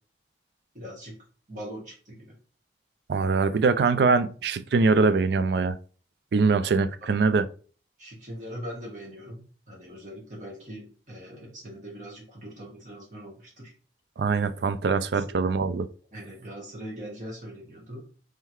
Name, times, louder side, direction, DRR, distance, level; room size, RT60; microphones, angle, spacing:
voice 1, 0.7-1.1 1.5-2.3 7.0-7.1 8.0-13.7 15.0-15.4 16.1-18.1, equal, 45° right, 1.7 m, -41 dB
voice 2, 3.1-5.8 6.3-7.4 14.2-15.9, right 4 dB, 70° right, 0.3 m, -23 dB
3.7 x 3.2 x 3.0 m
head